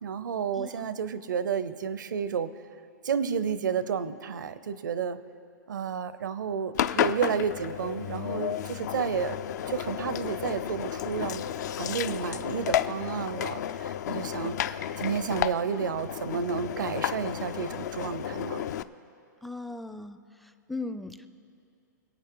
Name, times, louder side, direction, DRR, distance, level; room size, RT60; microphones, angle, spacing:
voice 1, 0.0-2.5 3.0-5.2 5.7-9.4 9.7-11.4 11.7-18.6, right 7 dB, 85° right, 14 dB, 0.8 m, -31 dB
Engine, 6.7-18.8, left 10 dB, 65° left, 0.5 m, -32 dB
voice 2, 19.4-21.3, left 3 dB, ahead, 11 dB, 0.4 m, -38 dB
26.0 x 8.8 x 3.8 m, 2.5 s
hypercardioid pair, 140°, 10 cm